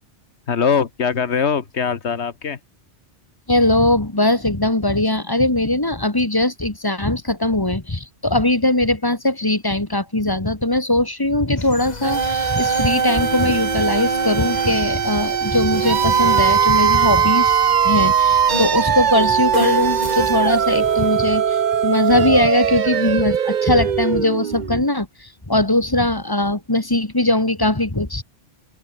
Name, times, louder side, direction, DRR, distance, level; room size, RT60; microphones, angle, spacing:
voice 1, 0.5-2.6, left 6 dB, 85° left, 1.7 m, -21 dB
voice 2, 3.5-28.2, left 1 dB, 20° left, 2.0 m, -20 dB
sound 1, 11.6-21.5, left 3 dB, 40° left, 2.1 m, -31 dB
sound 2, 12.0-24.9, right 8 dB, 50° right, 0.7 m, -20 dB
open air
omnidirectional pair, 1.1 m